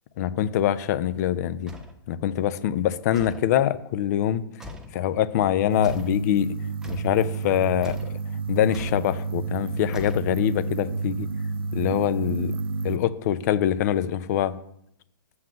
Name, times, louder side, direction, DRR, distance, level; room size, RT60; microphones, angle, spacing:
voice 1, 0.2-1.7 2.1-4.4 4.9-6.5 6.9-8.2 8.5-11.3 11.7-12.5 12.8-14.5, left 11 dB, 50° left, 14 dB, 0.7 m, -24 dB
sound 1, 1.7-2.0 3.1-3.5 4.6-5.0 5.8-6.2 6.8-7.2 7.8-8.2 8.7-9.1 9.9-10.6, left 2 dB, 5° right, 1.0 m, -42 dB
sound 2, 5.7-13.0, right 4 dB, 80° right, 0.5 m, -30 dB
7.8 x 5.7 x 7.7 m, 0.74 s
hypercardioid pair, 130°, 12 cm